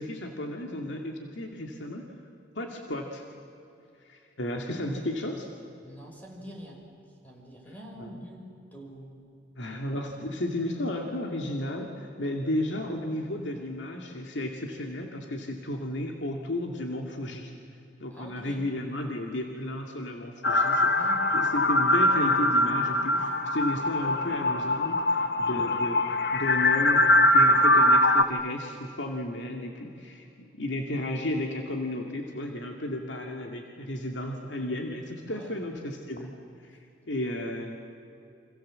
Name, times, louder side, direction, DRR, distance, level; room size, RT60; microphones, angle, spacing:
voice 1, 0.0-2.0 2.6-3.2 4.0-5.5 8.0-8.1 9.6-17.5 18.0-20.9 21.3-30.3 30.6-36.3 36.6-36.8 37.1-37.9, left 1 dB, 75° left, 2 dB, 2.3 m, -33 dB
voice 2, 5.8-6.8 7.2-8.4 8.7-9.2 18.1-18.6 20.8-21.2 35.3-35.5, equal, 10° left, 0 dB, 5.6 m, -45 dB
sound 1, 20.4-28.2, left 1 dB, 60° left, 1.3 m, -22 dB
29.0 x 26.0 x 7.7 m, 2.7 s
head